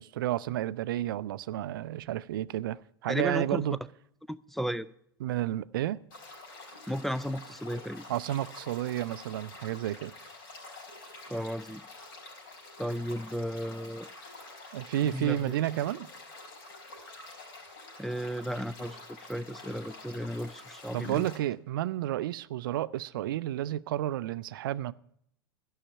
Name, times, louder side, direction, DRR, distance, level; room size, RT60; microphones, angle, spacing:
voice 1, 0.0-3.8 5.2-6.0 8.1-10.1 14.7-16.1 20.9-24.9, right 13 dB, 65° right, 0.4 m, -31 dB
voice 2, 3.1-3.6 4.3-4.9 6.9-8.0 11.3-11.8 12.8-14.1 15.0-15.4 18.0-19.0 19.3-21.3, equal, ahead, 0.3 m, -34 dB
sound 1, 6.1-21.4, left 2 dB, 65° left, 4.5 m, -48 dB
12.5 x 5.7 x 8.5 m
hypercardioid pair, 90°, 12 cm